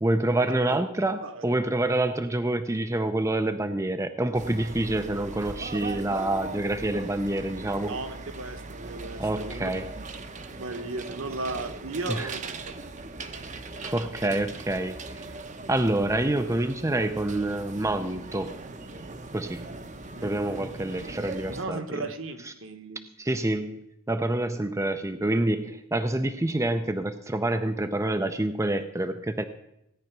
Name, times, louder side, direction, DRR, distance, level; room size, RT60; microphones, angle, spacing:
voice 1, 0.0-8.0 9.2-9.9 12.1-12.3 13.8-15.2 15.7-18.5 19.3-19.6 20.2-22.0 23.2-29.4, right 1 dB, 15° right, 8 dB, 0.5 m, -27 dB
sound 1, 4.3-21.6, right 3 dB, 35° right, 0.8 m, -40 dB
voice 2, 7.9-9.7 10.6-12.5 20.1-20.6 21.5-23.0, right 2 dB, 60° right, 9 dB, 1.4 m, -36 dB
17.0 x 10.0 x 6.0 m, 0.82 s
head